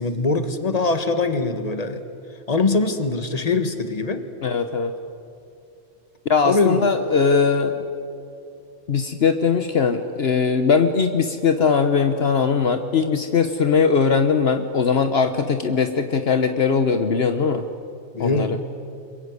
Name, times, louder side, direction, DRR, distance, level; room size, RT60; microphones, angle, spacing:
voice 1, 0.0-2.1 2.5-4.2 6.4-6.8 18.1-18.6, left 3 dB, 35° left, 9 dB, 1.8 m, -22 dB
voice 2, 4.4-4.9 6.3-7.7 8.9-17.6 18.2-18.6, left 5 dB, 65° left, 8 dB, 1.3 m, -20 dB
26.5 x 23.0 x 9.7 m, 2.6 s
omnidirectional pair, 1.2 m